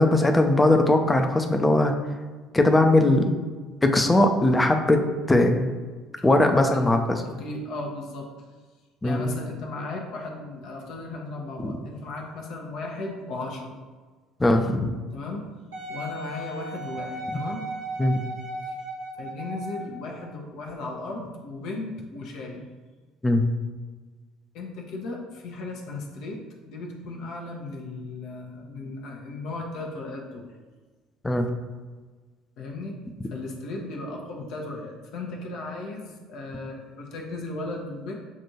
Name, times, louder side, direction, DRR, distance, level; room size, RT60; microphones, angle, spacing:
voice 1, 0.0-1.9 2.5-3.4 3.8-5.7 6.2-7.2 9.0-9.3 11.6-11.8 14.4-14.9 18.0-18.2 23.2-23.4 31.2-31.5, left 1 dB, 15° left, 5 dB, 0.5 m, -20 dB
voice 2, 6.2-6.8 7.2-8.3 9.0-13.8 15.1-15.5 15.9-17.6 19.2-22.6 24.5-30.5 32.6-33.0 33.3-38.1, left 2 dB, 55° left, 0 dB, 0.7 m, -36 dB
Wind instrument woodwind instrument, 15.7-20.0 20.7-20.8, right 1 dB, 75° right, 1.5 m, -36 dB
7.2 x 2.5 x 2.8 m, 1.4 s
figure-of-eight pair, 55°, 0 cm